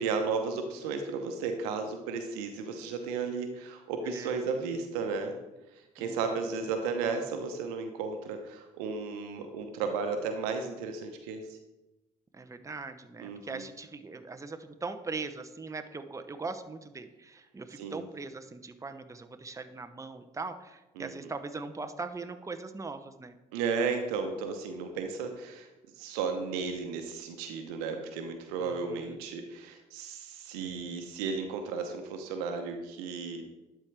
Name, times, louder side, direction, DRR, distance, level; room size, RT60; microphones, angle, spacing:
voice 1, 0.0-5.4 6.0-11.4 13.2-13.7 17.8-18.0 21.0-21.1 23.5-25.7 26.0-33.4, right 5 dB, 80° right, 6 dB, 0.9 m, -34 dB
voice 2, 4.0-4.5 6.0-6.6 12.3-23.4 28.6-29.2, right 3 dB, 15° right, 8 dB, 0.7 m, -40 dB
11.5 x 4.6 x 3.3 m, 1.0 s
hypercardioid pair, 55°, 19 cm